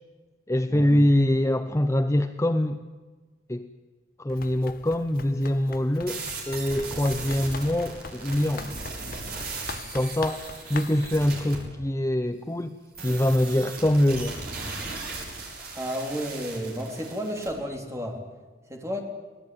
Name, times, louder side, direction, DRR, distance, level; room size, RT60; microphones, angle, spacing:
voice 1, 0.5-2.8 3.5-3.7 4.2-8.8 9.9-12.8 13.0-14.4, left 1 dB, 15° left, 8 dB, 0.7 m, -24 dB
Run, 4.3-11.2, left 5 dB, 50° left, 0.7 m, -43 dB
sound 1, 6.1-11.6 12.9-17.5, right 3 dB, 50° right, 6.5 m, -37 dB
voice 2, 15.7-18.2 18.7-19.0, equal, 15° right, 2 dB, 3.4 m, -32 dB
24.5 x 18.0 x 9.1 m, 1.4 s
head